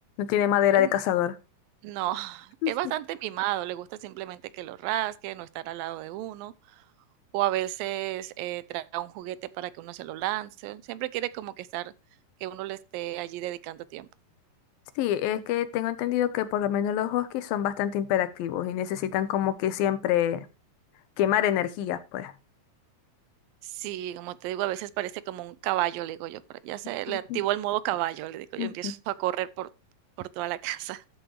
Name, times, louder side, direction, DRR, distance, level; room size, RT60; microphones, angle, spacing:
voice 1, 0.2-1.3 2.6-2.7 15.0-20.5 21.2-22.3 27.1-27.4 28.6-28.9, left 11 dB, 90° left, 2.8 m, -26 dB
voice 2, 1.8-6.8 7.3-11.9 12.4-14.1 23.6-29.7 30.2-31.0, right 15 dB, 85° right, 2.4 m, -32 dB
13.0 x 7.9 x 3.1 m
omnidirectional pair, 4.0 m